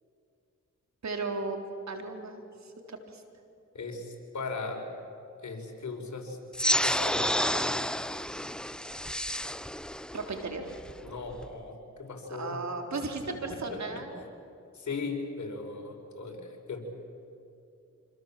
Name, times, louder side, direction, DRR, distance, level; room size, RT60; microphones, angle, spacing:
voice 1, 1.0-1.6 1.9-3.2 10.1-10.7 12.3-14.2, right 3 dB, 60° right, 4 dB, 3.8 m, -36 dB
voice 2, 3.7-4.8 5.4-6.4 6.8-7.9 11.0-12.6 13.3-14.0 14.7-16.8, left 4 dB, 65° left, 1 dB, 5.4 m, -38 dB
sound 1, 6.5-11.5, equal, 5° left, 0.8 m, -30 dB
26.5 x 26.0 x 7.5 m, 2.6 s
cardioid pair, 50°, 31 cm